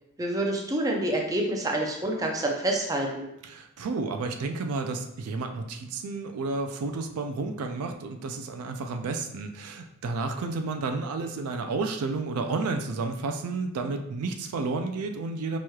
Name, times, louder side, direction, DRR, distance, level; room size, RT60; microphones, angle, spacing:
voice 1, 0.2-3.2, right 1 dB, 15° right, 0 dB, 0.5 m, -27 dB
voice 2, 3.4-15.6, right 3 dB, 75° right, 6 dB, 0.4 m, -31 dB
4.5 x 3.0 x 2.3 m, 0.82 s
head